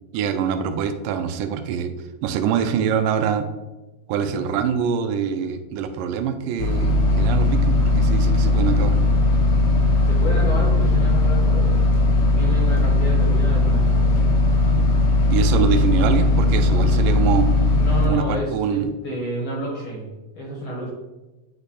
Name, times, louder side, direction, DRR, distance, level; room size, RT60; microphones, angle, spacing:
voice 1, 0.1-1.9 2.2-3.5 4.1-9.0 15.3-17.5 18.0-18.9, right 7 dB, 85° right, 8 dB, 2.2 m, -24 dB
voice 2, 4.2-4.7 10.1-11.8 12.3-14.2 17.7-20.9, left 1 dB, 55° left, -3 dB, 1.6 m, -30 dB
sound 1, 6.6-18.1, left 2 dB, 85° left, 2.6 m, -18 dB
9.0 x 3.3 x 4.1 m, 1.1 s
omnidirectional pair, 3.8 m